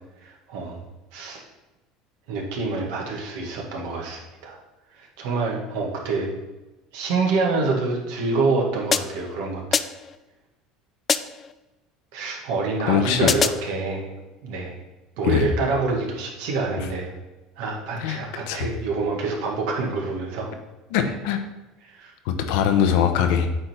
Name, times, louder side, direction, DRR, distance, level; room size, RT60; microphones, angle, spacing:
voice 1, 0.2-0.8 1.1-1.4 2.3-4.6 5.0-6.3 6.9-9.9 12.1-14.1 14.4-14.8 15.2-17.1 17.6-20.5 21.0-21.1 21.8-22.1, right 3 dB, 75° right, 0 dB, 1.8 m, -27 dB
sound 1, 8.9-9.3 9.7-10.2 11.1-11.5 13.3-13.7, left 6 dB, 30° left, 0.3 m, -24 dB
voice 2, 12.9-13.3 15.2-15.5 18.0-18.2 18.5-18.7 20.9-21.4 22.3-23.5, left 8 dB, 75° left, 7 dB, 0.9 m, -21 dB
8.8 x 3.8 x 4.5 m, 1.1 s
supercardioid pair, 120°, 0 cm